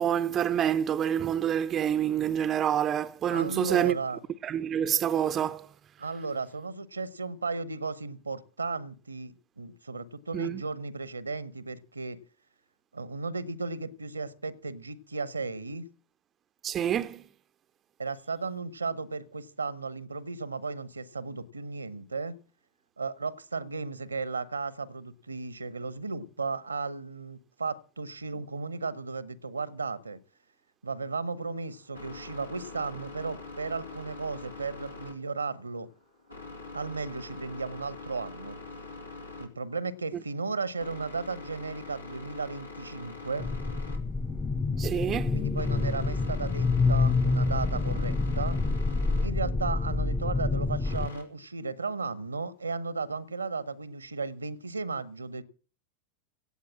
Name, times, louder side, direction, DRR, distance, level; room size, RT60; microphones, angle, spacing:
voice 1, 0.0-4.0 4.4-5.7 10.3-10.6 16.6-17.2 44.8-45.4, right 9 dB, 25° right, 0.6 m, -27 dB
voice 2, 3.3-4.2 6.0-12.2 12.9-15.9 18.0-22.3 23.0-30.2 30.8-35.9 36.7-38.6 39.4-43.5 45.3-48.6 49.2-55.4, right 4 dB, 80° right, 1.0 m, -35 dB
sound 1, 31.4-51.2, left 3 dB, 85° left, 3.4 m, -45 dB
sound 2, 43.4-51.1, left 3 dB, 10° left, 0.7 m, -27 dB
17.0 x 8.1 x 7.3 m
figure-of-eight pair, 90°, 0 cm